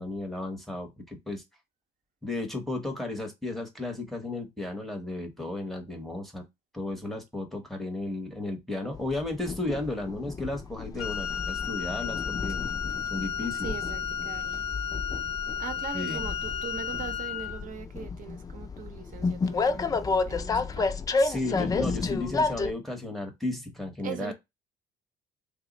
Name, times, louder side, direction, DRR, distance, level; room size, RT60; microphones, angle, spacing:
voice 1, 0.0-1.4 2.2-6.4 6.7-12.6 13.1-13.7 15.9-16.2 21.2-24.3, left 2 dB, ahead, 0.8 m, -34 dB
Train, 8.9-22.7, left 4 dB, 20° left, 0.4 m, -31 dB
Wind instrument woodwind instrument, 11.0-17.6, left 8 dB, 75° left, 0.6 m, -33 dB
voice 2, 13.6-14.7 15.6-20.9 24.0-24.3, right 6 dB, 50° right, 0.7 m, -40 dB
3.3 x 2.0 x 3.7 m
cardioid pair, 110°, 17 cm